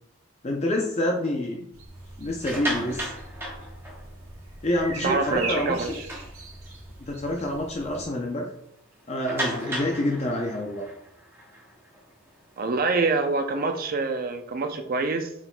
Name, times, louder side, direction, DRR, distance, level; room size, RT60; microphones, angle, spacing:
voice 1, 0.4-1.7 2.2-3.1 4.6-5.9 7.0-8.5 9.1-10.9, left 1 dB, 30° left, 1 dB, 0.5 m, -27 dB
sound 1, 1.7-8.1, right 2 dB, 80° right, 1.3 m, -40 dB
sound 2, 2.3-4.4 4.9-5.0 5.4-5.5 5.9-6.9 7.4-7.5 7.9-8.0 9.2-12.6, right 1 dB, 10° right, 0.9 m, -35 dB
voice 2, 5.0-6.0 12.6-15.3, right 3 dB, 45° right, 6 dB, 0.5 m, -26 dB
6.0 x 4.0 x 2.2 m, 0.74 s
head